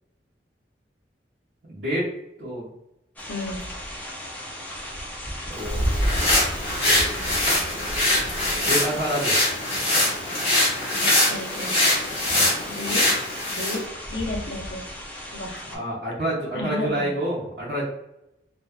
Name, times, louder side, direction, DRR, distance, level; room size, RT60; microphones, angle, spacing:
voice 1, 1.6-2.1 2.4-2.7 5.4-5.9 6.7-7.0 8.6-9.4 12.3-12.5 15.7-17.8, right 1 dB, 70° right, -11 dB, 0.9 m, -28 dB
voice 2, 3.2-3.7 11.0-11.9 12.7-13.1 13.5-14.9 15.3-15.7 16.6-17.1, left 2 dB, 70° left, 1 dB, 0.6 m, -33 dB
sound 1, 3.2-15.8, equal, 10° left, 0.4 m, -36 dB
sound 2, 5.6-13.8, left 1 dB, 35° left, 1.1 m, -23 dB
2.6 x 2.3 x 2.2 m, 0.87 s
head